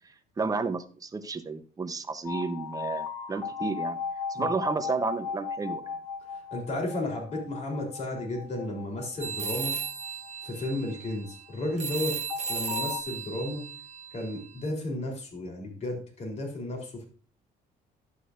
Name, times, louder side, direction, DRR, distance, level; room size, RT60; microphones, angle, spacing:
voice 1, 0.4-4.0 4.3-5.8, right 4 dB, 20° right, 8 dB, 0.9 m, -31 dB
sound 1, 2.2-11.3 12.3-13.0, left 6 dB, 15° left, 1.8 m, -37 dB
voice 2, 6.5-9.8 10.4-12.2 12.5-13.6 14.1-17.1, left 1 dB, 40° left, 1 dB, 3.6 m, -33 dB
sound 2, 9.2-14.7, right 6 dB, 40° right, 1.1 m, -36 dB
11.0 x 8.3 x 2.6 m, 0.39 s
cardioid pair, 110°, 17 cm